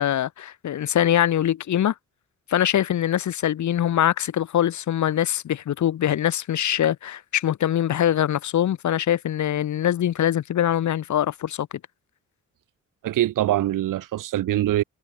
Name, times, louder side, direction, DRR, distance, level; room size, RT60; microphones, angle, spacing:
voice 1, 0.0-1.9 2.5-11.7, left 11 dB, 65° left, 0.8 m, -23 dB
voice 2, 13.0-14.8, right 13 dB, 85° right, 0.7 m, -23 dB
wide cardioid pair, 115°, 32 cm